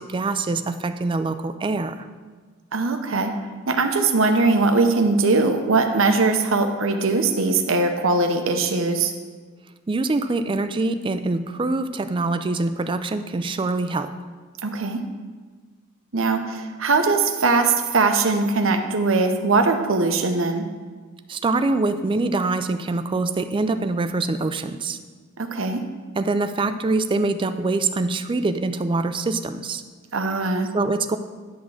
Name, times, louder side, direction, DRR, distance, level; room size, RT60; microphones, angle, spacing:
voice 1, 0.0-2.1 9.9-14.1 21.3-25.0 26.2-29.8 30.7-31.2, right 3 dB, 25° right, 9 dB, 0.3 m, -24 dB
voice 2, 2.7-3.3 3.7-9.1 14.6-15.0 16.1-20.6 25.4-25.8 30.1-30.7, right 3 dB, 60° right, 6 dB, 0.8 m, -21 dB
10.5 x 3.6 x 6.3 m, 1.4 s
head